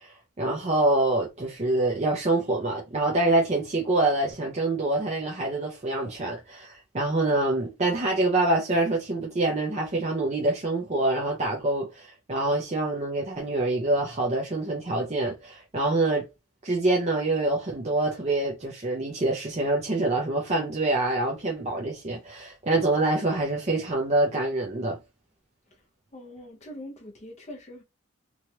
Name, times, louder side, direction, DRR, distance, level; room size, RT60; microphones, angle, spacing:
voice 1, 0.0-16.2 16.6-25.0, right 2 dB, 30° right, 0.5 m, -26 dB
voice 2, 26.1-27.8, left 1 dB, 30° left, 0.6 m, -42 dB
3.1 x 2.3 x 2.8 m
head